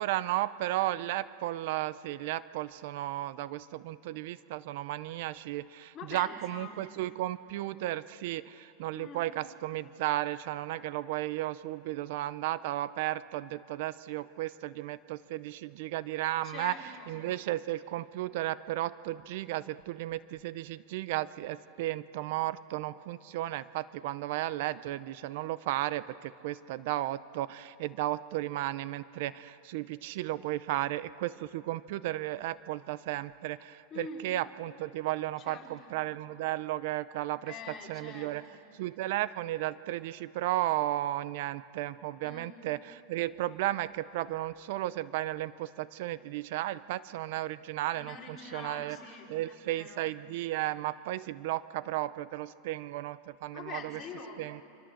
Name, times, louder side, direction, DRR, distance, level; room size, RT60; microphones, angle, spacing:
voice 1, 0.0-16.7 17.1-38.4 38.7-49.0 49.3-54.0 54.4-54.6, right 15 dB, 60° right, 16 dB, 0.6 m, -34 dB
voice 2, 5.9-6.8 8.9-9.2 16.4-17.1 33.9-34.3 35.4-35.9 37.4-38.3 42.2-42.6 47.9-50.0 53.5-54.4, left 5 dB, 25° left, -1 dB, 4.4 m, -45 dB
28.0 x 25.0 x 7.8 m, 2.6 s
supercardioid pair, 145°, 0 cm